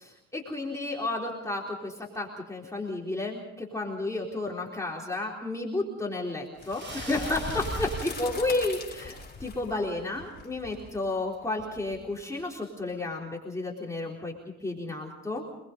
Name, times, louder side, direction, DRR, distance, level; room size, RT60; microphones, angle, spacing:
voice 1, 0.0-14.3 14.6-15.5, left 2 dB, 10° left, -3 dB, 4.0 m, -32 dB
sound 1, 6.6-12.4, left 2 dB, 30° left, 4.0 m, -40 dB
sound 2, 6.6-9.6, right 2 dB, 40° right, 6.7 m, -45 dB
27.5 x 20.5 x 5.3 m, 0.89 s
cardioid pair, 90°, 30 cm